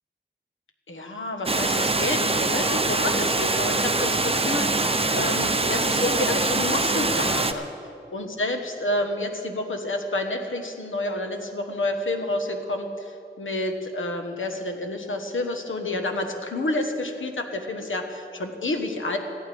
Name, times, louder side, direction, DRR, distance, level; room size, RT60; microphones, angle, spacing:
voice 1, 0.9-7.7 8.1-19.2, left 2 dB, 85° left, 4 dB, 1.3 m, -29 dB
Water, 1.5-7.5, right 2 dB, 30° right, 0.8 m, -23 dB
21.0 x 14.0 x 3.5 m, 2.7 s
wide cardioid pair, 65°, 20 cm